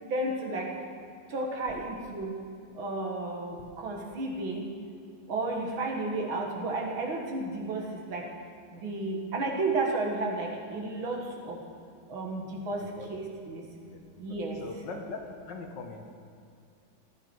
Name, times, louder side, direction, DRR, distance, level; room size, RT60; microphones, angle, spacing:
voice 1, 0.1-0.8 1.3-2.4 2.7-4.7 5.3-8.3 8.7-11.6 12.1-13.7 14.2-14.6, right 2 dB, 70° right, 0 dB, 2.5 m, -32 dB
voice 2, 12.7-13.1 13.9-14.0 14.6-15.2 15.5-16.2, left 3 dB, 60° left, 3 dB, 1.8 m, -41 dB
15.0 x 12.0 x 4.6 m, 2.4 s
omnidirectional pair, 2.3 m